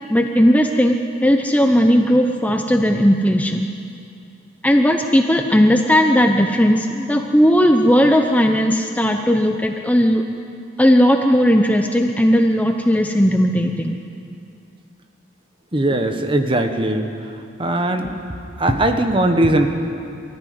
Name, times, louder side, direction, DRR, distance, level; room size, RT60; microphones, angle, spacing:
voice 1, 0.1-1.0 1.2-3.7 4.6-10.2 10.8-14.0, equal, 10° left, 4 dB, 0.7 m, -16 dB
voice 2, 15.7-17.1 17.6-18.2 18.6-19.7, right 1 dB, 25° right, 6 dB, 1.3 m, -19 dB
23.5 x 14.5 x 9.5 m, 2.6 s
head